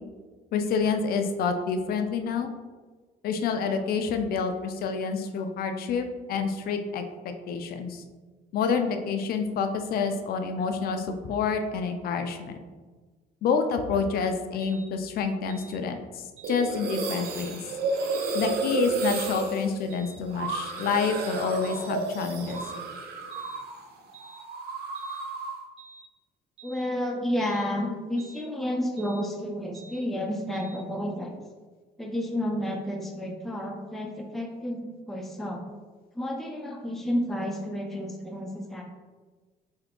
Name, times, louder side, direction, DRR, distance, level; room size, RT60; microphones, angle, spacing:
voice 1, 0.5-2.5 3.2-7.0 7.5-8.0 8.5-12.6 13.4-17.6 18.3-22.6, left 5 dB, 65° left, 6 dB, 0.5 m, -28 dB
sound 1, 14.6-14.9 15.5-15.8 16.4-16.6 17.2-17.5 18.1-18.4 19.0-19.3 19.9-20.2 20.8-21.1 21.6-21.9 22.5-22.8 23.3-23.6 24.1-24.4 24.9-25.2 25.8-26.1 26.6-26.9 27.4-27.7 28.2-28.5 29.0-29.2 29.7-30.0 30.5-30.8, right 4 dB, 35° right, 1.3 m, -49 dB
sound 2, 16.4-23.8 24.1-25.6, right 4 dB, 65° right, 0.6 m, -32 dB
voice 2, 26.6-31.4 32.0-35.7 36.2-38.8, equal, ahead, 1 dB, 0.5 m, -31 dB
3.5 x 2.8 x 3.6 m, 1.3 s
cardioid pair, 110°, 17 cm